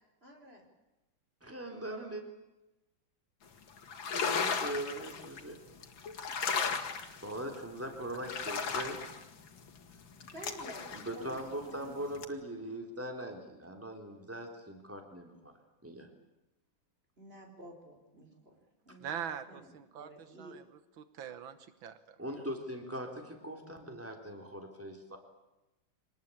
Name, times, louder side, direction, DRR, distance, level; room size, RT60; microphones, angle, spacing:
voice 1, 0.2-0.7 10.2-10.9 11.1-12.0 17.2-20.6, right 1 dB, 30° right, 3 dB, 5.0 m, -51 dB
voice 2, 1.4-2.2 4.1-5.6 7.2-9.0 10.9-15.5 15.8-16.1 22.2-25.2, right 1 dB, 5° right, 3 dB, 3.7 m, -41 dB
sound 1, 3.8-5.4 5.8-7.6 8.1-11.9 12.2-12.3, left 5 dB, 80° left, 2.5 m, -35 dB
voice 3, 19.0-20.6 21.0-22.2, right 8 dB, 90° right, 12 dB, 2.0 m, -43 dB
25.5 x 19.5 x 8.7 m, 0.99 s
omnidirectional pair, 2.1 m